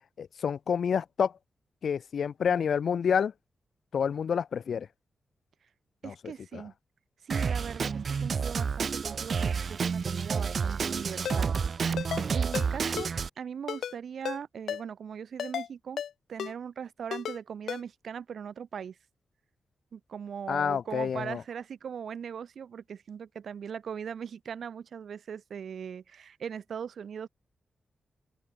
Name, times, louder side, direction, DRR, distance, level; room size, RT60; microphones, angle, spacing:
voice 1, 0.2-1.3 1.8-3.3 3.9-4.9 6.0-6.1 6.5-6.6 20.5-21.4, left 7 dB, 70° left, 0.4 m, -28 dB
voice 2, 6.0-6.7 7.2-11.5 11.9-13.1 13.4-16.0 16.3-19.0 19.9-27.3, right 7 dB, 75° right, 3.5 m, -40 dB
Drum kit, 7.3-13.3, right 6 dB, 60° right, 0.6 m, -30 dB
Ringtone, 11.3-11.4 12.0-12.2 12.5-12.7 13.0-13.1 13.7-14.0 14.3-14.4 14.7-14.8 15.4-15.7 16.0-16.1 16.4-16.5 17.1-17.4 17.7-17.8, left 9 dB, 85° left, 1.2 m, -34 dB
open air
cardioid pair, 80°, 0 cm